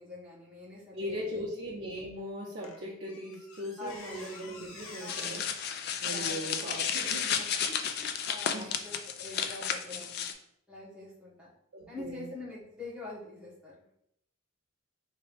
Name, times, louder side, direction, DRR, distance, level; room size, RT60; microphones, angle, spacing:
voice 1, 0.0-1.4 3.8-4.3 5.0-5.5 6.0-6.7 7.0-7.5 8.0-10.3 10.7-11.5 11.9-13.9, left 2 dB, 5° right, -8 dB, 1.5 m, -45 dB
voice 2, 0.9-5.5 6.0-7.3 7.7-7.8 8.5-8.7 11.7-12.3, equal, 85° right, -10 dB, 1.2 m, -39 dB
Squeak, 2.6-8.8 9.4-9.6, left 4 dB, 85° left, 0.7 m, -50 dB
sound 1, 5.1-10.3, left 7 dB, 50° left, 0.3 m, -33 dB
4.3 x 3.3 x 2.6 m, 0.73 s
head